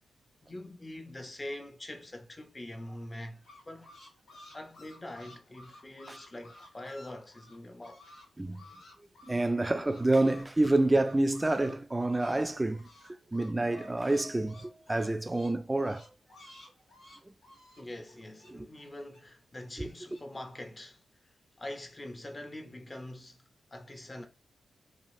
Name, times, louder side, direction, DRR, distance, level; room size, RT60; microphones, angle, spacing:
voice 1, 0.4-3.9 4.5-8.0 17.8-23.4 23.7-24.3, left 1 dB, 30° left, 0.6 m, -44 dB
sound 1, 3.1-8.3 8.5-12.4 12.7-19.2 19.6-20.2, left 2 dB, 85° left, 1.2 m, -54 dB
voice 2, 9.3-12.9 13.3-16.1 18.5-18.7 19.8-19.9, right 2 dB, 20° right, 0.3 m, -28 dB
3.3 x 2.3 x 2.6 m
supercardioid pair, 45°, 0 cm